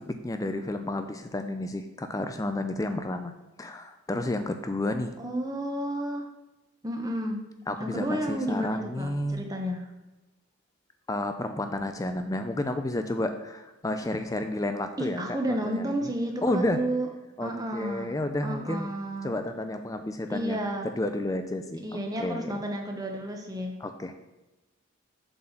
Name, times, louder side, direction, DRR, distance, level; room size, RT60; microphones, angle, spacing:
voice 1, 0.2-5.1 7.7-9.4 11.1-16.1 16.4-16.9 17.4-18.9 19.2-21.9 22.2-22.6 23.8-24.1, left 1 dB, 15° left, 7 dB, 0.4 m, -31 dB
voice 2, 5.2-6.3 6.8-7.4 7.8-9.9 15.0-17.1 17.4-18.1 18.4-19.3 20.3-20.9 21.8-23.8, right 1 dB, 20° right, 2 dB, 0.9 m, -31 dB
7.4 x 4.0 x 5.9 m, 1.1 s
head